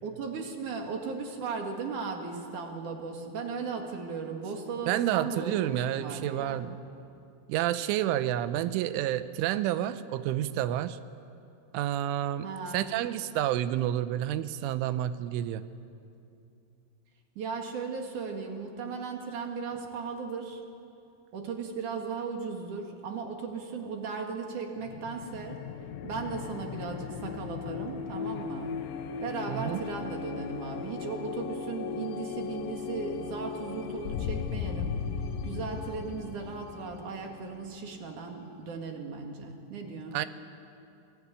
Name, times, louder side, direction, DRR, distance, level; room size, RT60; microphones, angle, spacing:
voice 1, 0.0-6.6 12.4-12.9 17.4-20.6 21.3-25.6 26.0-28.7 29.2-35.0 35.4-40.2, right 5 dB, 50° right, 3 dB, 2.8 m, -37 dB
voice 2, 4.9-6.8 7.5-11.0 11.7-12.5 12.7-15.6 29.5-29.8 40.1-40.3, right 12 dB, 80° right, 13 dB, 3.2 m, -29 dB
sound 1, 24.8-38.3, left 6 dB, 80° left, 3.2 m, -37 dB
26.0 x 18.5 x 9.7 m, 2.6 s
omnidirectional pair, 5.6 m